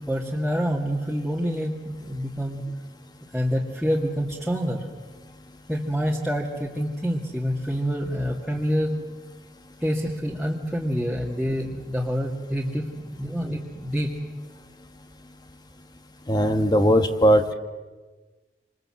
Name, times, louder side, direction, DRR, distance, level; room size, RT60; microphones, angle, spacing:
voice 1, 0.1-2.7 3.3-4.8 5.7-8.9 9.8-14.1, equal, ahead, -4 dB, 2.2 m, -27 dB
voice 2, 16.3-17.5, equal, 25° left, 7 dB, 1.3 m, -19 dB
27.5 x 27.0 x 7.8 m, 1.3 s
head